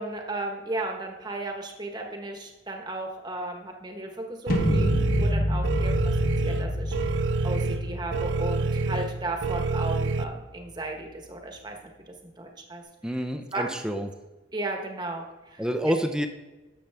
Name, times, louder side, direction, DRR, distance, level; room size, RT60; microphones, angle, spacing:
voice 1, 0.0-6.2 6.4-11.8 12.1-12.8 13.5-13.7 14.5-15.9, right 2 dB, 20° right, 3 dB, 1.2 m, -35 dB
sound 1, 4.5-10.5, equal, 50° left, 1.2 m, -29 dB
sound 2, 4.5-10.2, right 4 dB, 70° right, 0.4 m, -27 dB
voice 2, 13.0-14.1 15.6-16.3, equal, 5° right, 6 dB, 0.6 m, -28 dB
12.0 x 7.3 x 3.5 m, 1.1 s
head